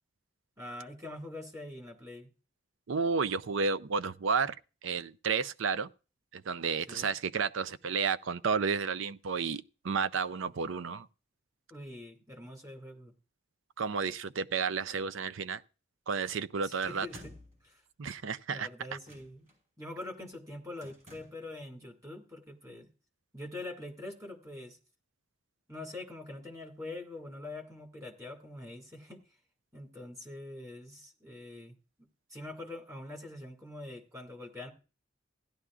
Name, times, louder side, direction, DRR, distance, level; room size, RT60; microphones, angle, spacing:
voice 1, 0.6-2.3 6.9-7.1 11.7-13.1 16.6-17.3 17.6-17.8 18.5-19.5 19.8-22.9 23.3-24.8 25.7-29.2 29.7-31.7 32.3-34.7, left 2 dB, 15° right, 2.1 m, -44 dB
voice 2, 2.9-4.5 4.8-5.9 6.3-11.1 13.8-15.6 16.1-17.1 18.0-18.7, right 5 dB, 65° right, 0.5 m, -31 dB
sound 1, 16.8-17.6 19.0-19.5 20.8-21.5, left 1 dB, 35° right, 4.7 m, -52 dB
16.5 x 11.0 x 2.4 m
head